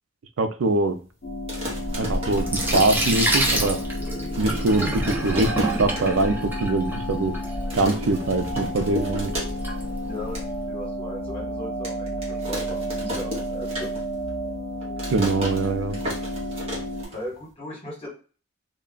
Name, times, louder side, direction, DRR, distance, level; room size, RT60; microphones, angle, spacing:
voice 1, 0.4-1.0 2.0-3.8 4.4-7.3 7.7-9.3 15.1-16.0, right 3 dB, 80° right, 8 dB, 0.4 m, -23 dB
sound 1, 1.2-17.1, equal, 65° left, 0.6 m, -32 dB
sound 2, 1.3-3.6 3.9-4.0 4.2-6.3 6.6-6.7 6.9-7.3 7.7-9.8 10.1-10.5 11.0-11.1 11.8-14.3 14.6-17.5, left 1 dB, 30° right, 0.9 m, -34 dB
Sink (filling or washing), 1.7-10.5, right 1 dB, 10° right, 0.5 m, -29 dB
voice 2, 10.1-10.4 10.7-13.9 17.1-18.1, left 1 dB, 30° left, -3 dB, 1.3 m, -37 dB
2.4 x 2.2 x 3.6 m, 0.38 s
head